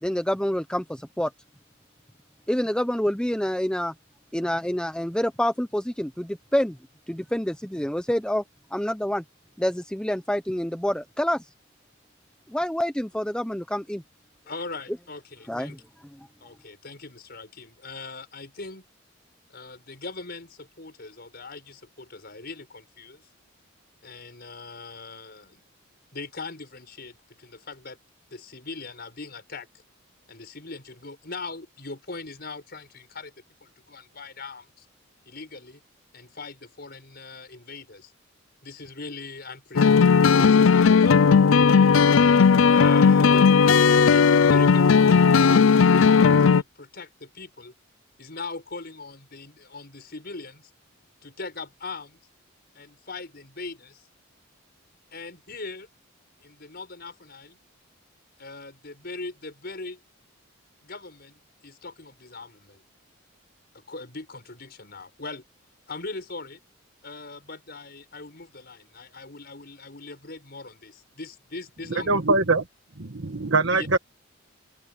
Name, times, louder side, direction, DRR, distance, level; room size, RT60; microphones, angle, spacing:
voice 1, 0.0-1.3 2.5-3.9 4.3-6.8 7.1-8.4 8.7-9.2 9.6-11.4 12.5-14.0 15.5-15.8, equal, 5° left, 0.9 m, -27 dB
voice 2, 14.5-15.8 16.4-18.8 19.5-23.3 24.0-25.6 26.1-28.0 28.3-29.7 30.3-33.3 33.6-34.9 35.3-35.8 36.1-38.1 38.6-40.1 40.4-41.2 41.6-41.9 42.7-43.5 44.1-45.2 45.9-47.7 48.2-50.7 51.2-52.2 52.7-54.1 55.1-55.9 56.4-57.6 58.4-60.0 60.8-62.8 63.7-65.4 65.9-66.6 67.0-72.2 73.8-73.9, left 3 dB, 50° left, 5.8 m, -40 dB
sound 1, 39.8-46.6, left 5 dB, 75° left, 0.5 m, -16 dB
voice 3, 72.1-72.6 73.0-74.0, right 3 dB, 65° right, 1.6 m, -22 dB
open air
head